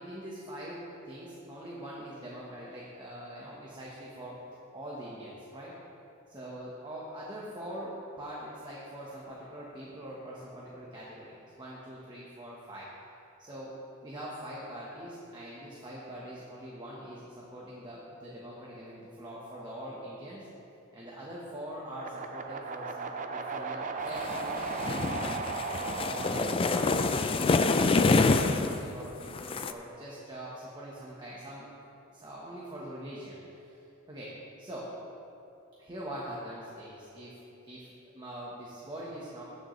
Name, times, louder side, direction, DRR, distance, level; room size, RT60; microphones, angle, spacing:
voice 1, 0.0-4.4 4.7-5.7 6.3-12.9 13.4-13.7 14.0-20.5 20.9-25.4 26.0-31.7 32.1-33.8 34.1-34.9 35.8-37.4 37.6-39.4, right 1 dB, 20° right, -6 dB, 1.2 m, -43 dB
sound 1, 21.9-28.1, right 4 dB, 40° right, 0.5 m, -37 dB
sound 2, 24.3-28.8 29.3-29.7, left 3 dB, 25° left, 0.3 m, -26 dB
17.0 x 6.5 x 3.2 m, 2.8 s
head